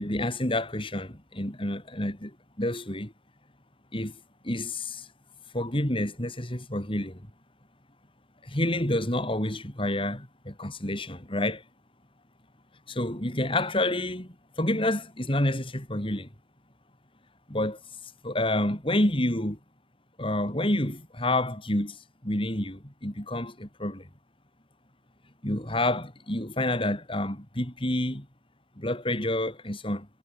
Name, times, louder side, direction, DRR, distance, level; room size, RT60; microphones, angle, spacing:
voice 1, 0.0-3.1 3.9-4.2 4.4-5.1 5.5-7.3 8.4-11.6 12.9-16.3 17.5-17.8 18.2-19.6 20.2-24.1 25.4-28.3 28.8-30.1, left 1 dB, 30° left, 4.8 m, -29 dB
head